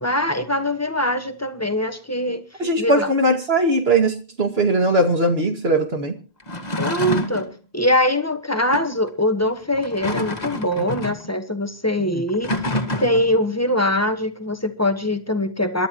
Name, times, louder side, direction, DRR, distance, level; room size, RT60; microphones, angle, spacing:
voice 1, 0.0-2.4 2.8-3.1 6.8-12.5 13.0-15.9, left 1 dB, 15° left, 8 dB, 1.3 m, -22 dB
voice 2, 2.6-6.1 10.8-11.0 12.1-12.2, right 1 dB, 70° right, 4 dB, 2.4 m, -20 dB
sound 1, 6.4-7.5 8.7-8.9 9.7-11.3 12.3-13.4, left 1 dB, 40° left, 1.9 m, -27 dB
27.5 x 12.5 x 3.0 m, 0.36 s
omnidirectional pair, 1.1 m